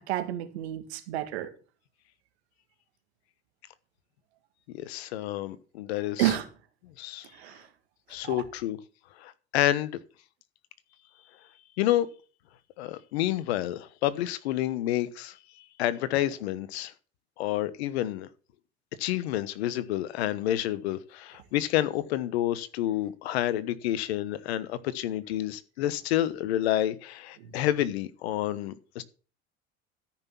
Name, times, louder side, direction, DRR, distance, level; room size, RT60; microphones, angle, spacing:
voice 1, 0.1-1.5 6.2-6.5 7.3-7.7 8.2-8.4 27.4-27.5, right 13 dB, 80° right, 2.1 m, -30 dB
voice 2, 4.7-6.3 7.0-7.3 8.1-8.8 9.2-10.0 11.8-12.1 12.8-16.9 17.4-18.3 19.0-29.0, left 13 dB, 80° left, 1.2 m, -29 dB
13.5 x 6.1 x 7.1 m
hypercardioid pair, 85°, 32 cm